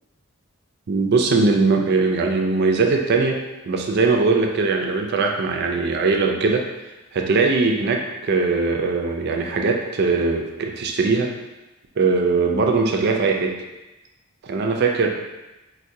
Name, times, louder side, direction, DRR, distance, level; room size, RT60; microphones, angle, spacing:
voice 1, 0.9-3.4 3.7-6.6 7.1-11.3 12.0-13.6 14.4-15.1, right 4 dB, 50° right, 2 dB, 0.4 m, -20 dB
4.5 x 2.2 x 2.6 m, 1.0 s
head